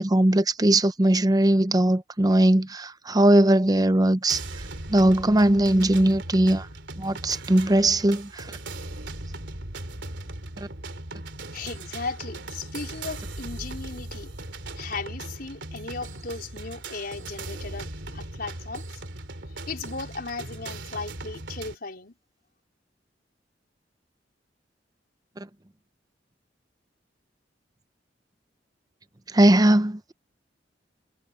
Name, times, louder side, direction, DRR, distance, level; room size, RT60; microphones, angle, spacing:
voice 1, 0.0-4.4 4.9-6.7 7.0-8.6 25.4-25.5 29.3-30.1, right 1 dB, 20° right, 0.7 m, -20 dB
sound 1, 4.3-21.7, right 2 dB, 80° right, 3.2 m, -38 dB
voice 2, 11.5-14.3 14.8-19.0 19.7-22.1, left 4 dB, 55° left, 4.7 m, -36 dB
head